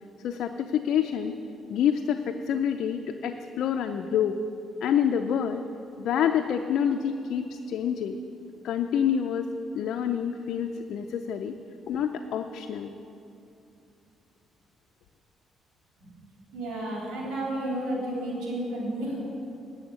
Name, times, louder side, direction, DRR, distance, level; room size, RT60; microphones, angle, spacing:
voice 1, 0.2-1.3 1.7-4.4 4.8-5.6 6.0-8.2 8.6-9.5 9.7-11.6 11.8-12.9, left 8 dB, 75° left, 5 dB, 0.5 m, -27 dB
voice 2, 16.5-19.2, right 1 dB, 85° right, -4 dB, 3.3 m, -31 dB
9.6 x 7.0 x 8.8 m, 2.6 s
cardioid pair, 95°, 0 cm